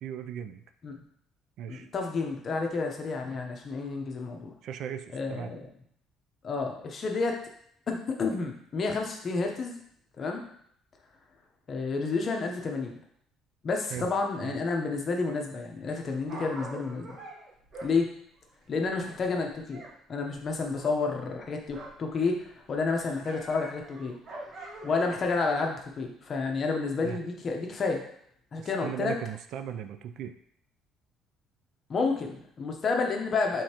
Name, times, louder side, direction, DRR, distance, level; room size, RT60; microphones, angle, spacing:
voice 1, 0.0-0.6 1.6-1.9 4.6-5.6 13.9-14.1 14.4-14.6 27.0-27.2 28.6-30.3, right 9 dB, 60° right, 9 dB, 0.3 m, -38 dB
voice 2, 1.7-4.5 5.1-5.7 6.4-7.4 7.9-9.8 10.2-10.4 11.7-13.0 13.6-17.2 17.8-18.1 18.7-19.8 20.1-24.2 24.8-28.0 28.5-29.1 31.9-33.6, left 4 dB, 35° left, 2 dB, 0.8 m, -30 dB
Dog, 15.9-20.0 20.2-22.1 22.4-25.4 26.0-26.1, right 2 dB, 40° right, 1.0 m, -45 dB
5.0 x 3.6 x 2.9 m, 0.67 s
cardioid pair, 150°, 0 cm